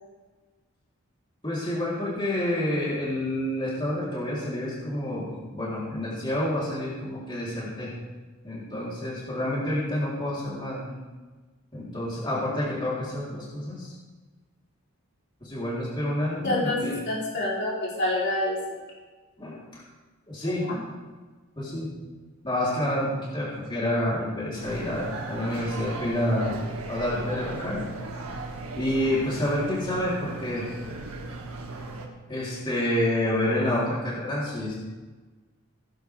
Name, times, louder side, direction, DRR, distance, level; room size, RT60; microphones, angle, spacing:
voice 1, 1.4-7.9 8.4-11.0 11.7-13.9 15.4-16.9 19.4-19.8 20.3-20.7 21.6-21.9 22.4-26.6 26.9-27.8 28.8-30.7 32.3-34.8, left 1 dB, 20° left, -7 dB, 3.5 m, -28 dB
voice 2, 16.4-18.6 20.6-20.7, left 1 dB, 50° left, -6 dB, 3.5 m, -27 dB
sound 1, 24.5-32.1, right 2 dB, 85° right, 1.9 m, -37 dB
17.5 x 11.0 x 3.5 m, 1.3 s
head